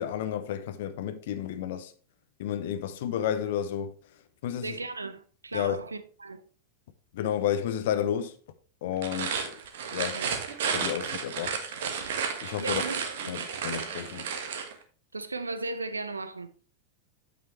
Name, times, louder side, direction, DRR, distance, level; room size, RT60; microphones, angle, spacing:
voice 1, 0.0-1.9 2.4-3.9 4.4-4.8 5.5-5.8 7.1-8.3 8.8-9.5 9.9-10.2 10.7-11.6 12.4-12.8 13.3-14.3, left 10 dB, 55° left, 0.7 m, -31 dB
voice 2, 4.6-6.4 10.1-10.3 12.6-13.4 15.1-16.5, right 3 dB, 80° right, 0.7 m, -36 dB
sound 1, 8.9-14.7, right 6 dB, 55° right, 1.4 m, -32 dB
8.8 x 7.9 x 3.2 m
figure-of-eight pair, 90°, 0 cm